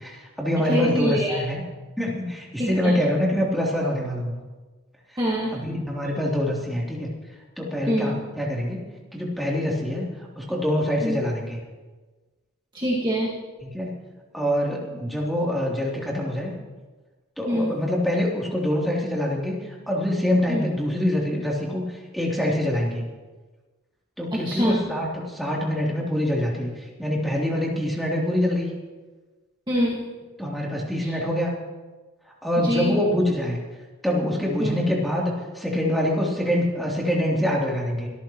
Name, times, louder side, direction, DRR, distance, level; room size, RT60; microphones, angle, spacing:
voice 1, 0.0-1.6 2.0-4.3 5.5-7.1 7.6-8.8 9.1-11.6 13.7-13.9 14.3-16.5 17.4-23.0 24.2-28.7 30.4-31.5 32.3-33.6 34.0-38.1, left 1 dB, ahead, -4 dB, 3.1 m, -25 dB
voice 2, 0.7-1.4 2.6-3.0 5.2-5.6 7.9-8.2 11.0-11.2 12.7-13.3 17.5-17.7 20.5-20.6 24.3-24.8 29.7-30.0 31.0-31.1 32.6-32.9 34.6-34.8, equal, 20° right, -5 dB, 1.8 m, -24 dB
25.0 x 13.5 x 3.1 m, 1.3 s
head